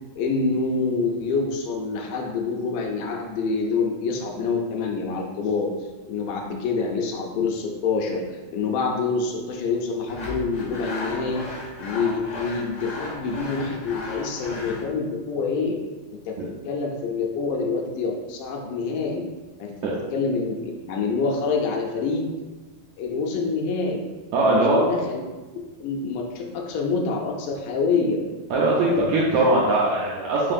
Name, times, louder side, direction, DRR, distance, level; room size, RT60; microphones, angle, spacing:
voice 1, 0.2-5.7 6.1-11.5 11.8-15.8 16.1-16.4 16.7-19.2 19.6-19.7 20.1-20.6 20.9-22.3 23.0-24.0 24.4-25.2 25.8-28.2, left 4 dB, 80° left, 0 dB, 2.1 m, -26 dB
Sawing, 10.1-14.9, left 2 dB, 60° left, 1.0 m, -35 dB
voice 2, 24.3-24.8 28.5-30.5, right 2 dB, 80° right, -5 dB, 1.7 m, -20 dB
4.9 x 3.8 x 2.5 m, 1.2 s
omnidirectional pair, 3.8 m